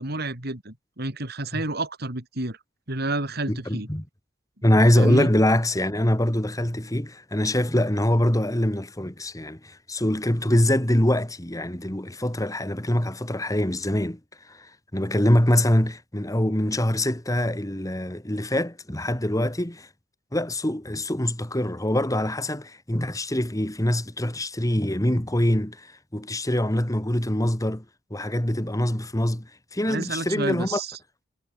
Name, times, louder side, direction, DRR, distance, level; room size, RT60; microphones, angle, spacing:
voice 1, 0.0-2.6 2.9-3.9 5.0-5.3 29.9-31.0, right 2 dB, 55° right, 4.0 m, -30 dB
voice 2, 3.5-4.0 4.6-14.2 14.5-19.9 20.3-27.8 28.1-30.8, left 1 dB, 20° left, 2.1 m, -24 dB
head